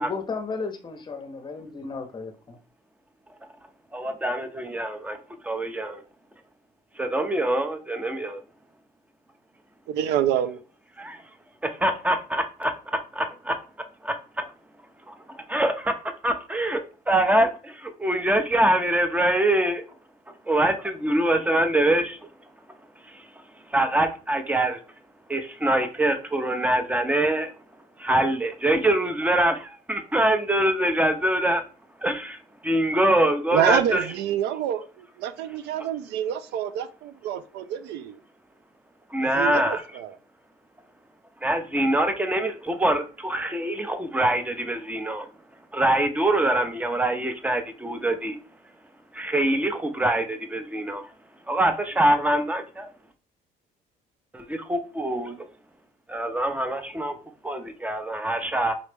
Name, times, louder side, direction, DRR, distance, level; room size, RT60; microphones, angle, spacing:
voice 1, 0.0-2.6, left 4 dB, 25° left, 0.8 m, -34 dB
voice 2, 3.9-5.2 5.4-6.0 7.0-8.4 11.0-11.2 11.6-13.6 14.0-14.5 15.1-15.9 16.2-19.8 20.5-22.2 23.0-23.3 23.7-24.8 25.3-27.5 28.0-31.6 32.0-34.0 39.1-39.8 41.4-45.3 45.7-48.4 49.1-51.1 51.5-52.9 54.3-55.5 56.1-57.1 57.4-58.7, right 1 dB, 10° right, 0.6 m, -24 dB
voice 3, 9.9-10.6 33.5-38.2 39.2-40.2, right 10 dB, 85° right, 0.5 m, -27 dB
4.0 x 3.1 x 3.3 m
cardioid pair, 110°, 17 cm